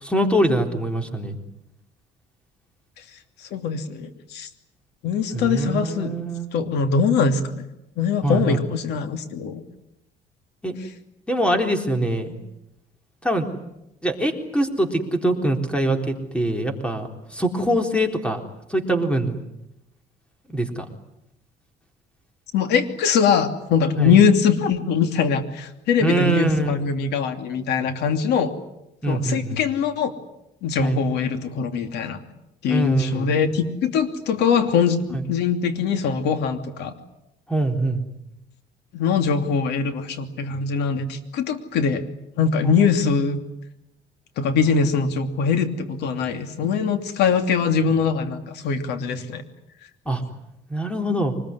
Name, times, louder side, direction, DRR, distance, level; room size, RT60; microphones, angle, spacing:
voice 1, 0.0-1.4 5.3-6.5 8.2-8.6 10.6-10.7 11.3-12.4 13.2-13.5 14.0-18.4 18.7-19.4 20.5-20.8 24.0-24.2 26.0-26.7 29.0-29.6 30.8-31.0 32.7-33.4 35.1-35.2 37.5-38.0 42.8-42.9 50.1-50.2 50.7-51.3, right 1 dB, 5° left, 5 dB, 3.9 m, -23 dB
voice 2, 3.5-4.5 5.0-6.1 6.5-7.6 8.0-9.6 22.5-28.5 29.1-30.1 30.6-32.2 32.6-36.9 38.9-42.0 42.4-43.4 44.4-49.4, left 6 dB, 80° left, 8 dB, 2.9 m, -22 dB
24.5 x 21.0 x 9.8 m, 0.85 s
cardioid pair, 110°, 17 cm